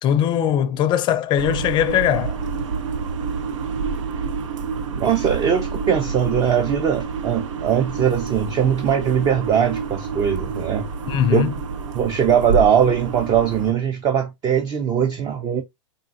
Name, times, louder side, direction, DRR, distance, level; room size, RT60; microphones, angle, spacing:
voice 1, 0.0-2.4 11.1-11.5, left 10 dB, 30° left, 0.5 m, -20 dB
sound 1, 1.4-13.7, right 5 dB, 75° right, 0.6 m, -28 dB
voice 2, 4.9-10.9 11.3-11.5 11.9-15.6, right 8 dB, 25° right, 0.6 m, -20 dB
3.9 x 3.7 x 2.4 m
hypercardioid pair, 115°, 16 cm